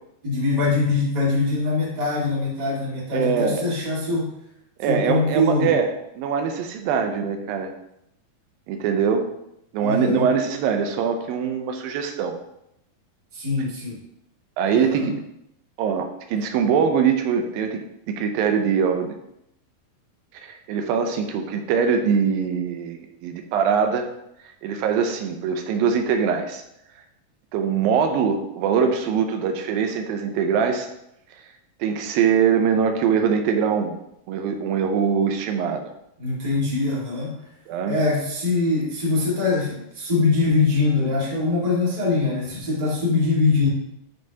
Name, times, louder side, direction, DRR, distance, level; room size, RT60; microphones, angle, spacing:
voice 1, 0.2-4.3 4.9-5.7 9.8-10.3 13.3-13.9 14.7-15.1 36.2-37.3 37.9-43.7, left 3 dB, 20° right, -5 dB, 1.1 m, -23 dB
voice 2, 3.1-3.7 4.8-5.9 6.2-7.7 8.7-9.3 9.7-12.4 14.6-15.1 15.8-17.8 18.1-19.2 20.4-24.1 24.6-26.6 27.5-30.9 31.8-33.9 34.3-35.9 37.7-38.0, right 6 dB, 90° right, 5 dB, 2.5 m, -22 dB
9.2 x 5.5 x 2.9 m, 0.80 s
omnidirectional pair, 4.0 m